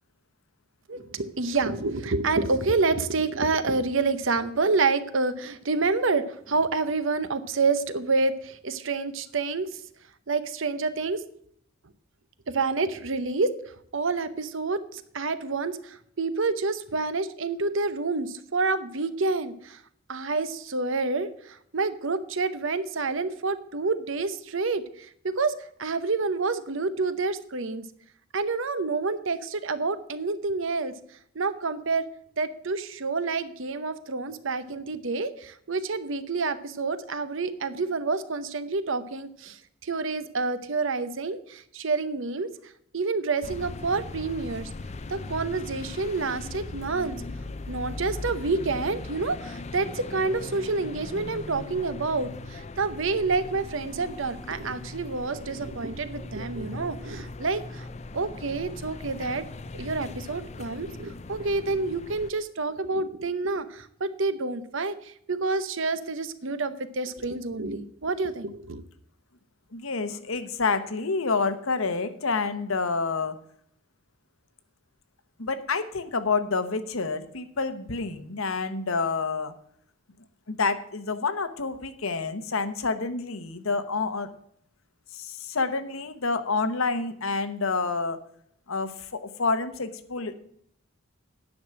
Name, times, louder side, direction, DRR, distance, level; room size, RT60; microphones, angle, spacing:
voice 1, 0.9-9.7 10.3-11.2 12.5-13.5 13.9-19.8 20.1-25.5 25.8-27.8 28.3-30.9 31.3-32.0 32.4-44.7 45.1-47.2 47.7-57.9 58.1-59.4 59.7-68.8, right 3 dB, 65° right, 13 dB, 0.8 m, -28 dB
sound 1, 43.4-62.3, left 2 dB, 30° left, 0.4 m, -39 dB
voice 2, 69.7-73.4 75.4-79.5 80.5-84.3 85.1-88.2 88.7-90.4, left 4 dB, 70° left, 10 dB, 1.0 m, -28 dB
9.8 x 6.3 x 7.5 m, 0.68 s
head